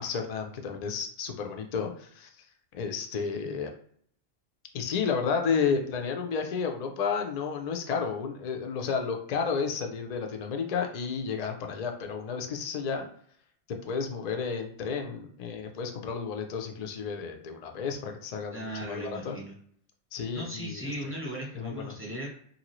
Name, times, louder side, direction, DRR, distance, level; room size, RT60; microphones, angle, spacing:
voice 1, 0.0-2.3 2.7-3.7 4.7-13.1 13.8-19.4 20.1-21.1 21.5-21.9, left 6 dB, 65° left, 4 dB, 0.4 m, -32 dB
voice 2, 18.5-19.5 20.3-22.3, right 1 dB, 15° right, -3 dB, 0.8 m, -37 dB
2.8 x 2.6 x 3.0 m, 0.62 s
omnidirectional pair, 1.2 m